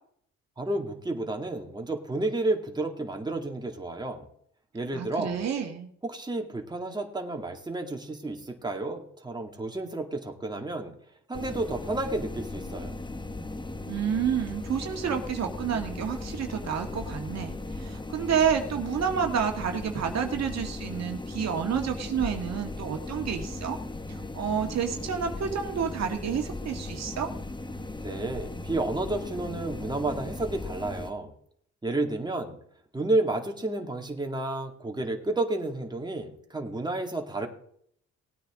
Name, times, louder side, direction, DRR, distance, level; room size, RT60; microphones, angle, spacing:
voice 1, 0.6-4.3 4.7-5.4 6.0-10.9 11.3-12.9 28.0-31.3 31.8-32.6 32.9-37.5, right 2 dB, 15° right, 3 dB, 2.2 m, -31 dB
voice 2, 4.9-5.9 13.9-23.8 24.1-27.3, right 7 dB, 60° right, 4 dB, 1.8 m, -29 dB
sound 1, 11.3-31.1, left 2 dB, 15° left, 1.1 m, -37 dB
18.5 x 9.2 x 3.7 m, 0.63 s
cardioid pair, 90°, 30 cm